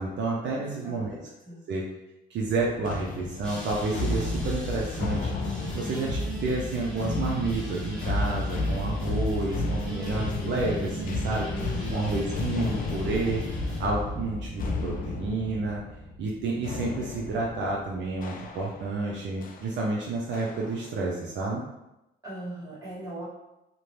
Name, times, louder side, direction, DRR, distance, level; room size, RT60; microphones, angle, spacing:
voice 1, 0.0-1.2 1.7-1.8 2.3-5.3 5.7-11.5 11.9-13.4 13.8-15.8 16.2-21.6, right 3 dB, 65° right, -3 dB, 0.5 m, -30 dB
voice 2, 0.5-1.7 11.5-12.4 22.2-23.2, right 1 dB, 20° right, -8 dB, 1.4 m, -40 dB
sound 1, 2.4-19.0 19.4-19.7 20.3-20.9, left 3 dB, 45° left, 0.4 m, -32 dB
sound 2, 3.4-13.8, right 2 dB, 5° left, 0.9 m, -38 dB
2.6 x 2.1 x 3.1 m, 0.92 s
cardioid pair, 90°, 20 cm